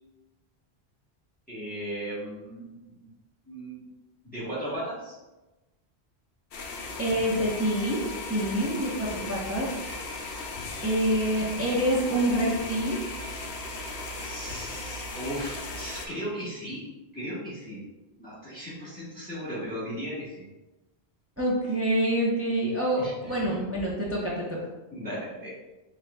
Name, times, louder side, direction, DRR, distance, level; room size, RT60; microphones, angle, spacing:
voice 1, 1.5-2.8 3.5-3.8 4.2-5.2 9.2-9.3 14.2-16.9 17.1-17.8 18.2-20.4 23.0-23.4 24.9-25.5, equal, 10° left, -10 dB, 1.3 m, -36 dB
sound 1, 6.5-16.1, left 3 dB, 70° left, 0.8 m, -37 dB
voice 2, 7.0-8.0 8.3-9.7 10.8-13.0 21.4-24.6, right 1 dB, 15° right, -5 dB, 0.6 m, -26 dB
4.4 x 3.6 x 2.2 m, 1.1 s
omnidirectional pair, 1.1 m